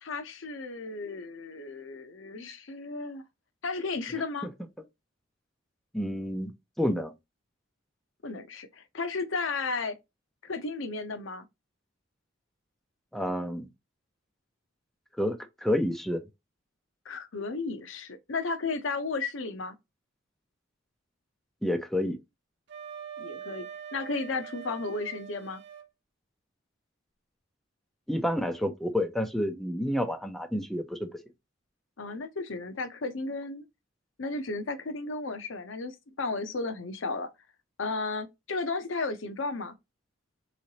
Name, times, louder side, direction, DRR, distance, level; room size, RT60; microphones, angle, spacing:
voice 1, 0.0-3.2 3.6-4.5 8.2-10.0 10.4-11.5 17.0-19.8 23.2-25.6 32.0-33.7 34.2-37.3 37.8-39.7, left 3 dB, 70° left, 0.7 m, -34 dB
voice 2, 5.9-6.5 6.8-7.1 13.1-13.7 15.2-16.2 21.6-22.2 28.1-31.1, left 1 dB, ahead, 0.6 m, -29 dB
Wind instrument woodwind instrument, 22.7-25.9, right 8 dB, 60° right, 0.7 m, -43 dB
3.8 x 3.1 x 2.8 m
head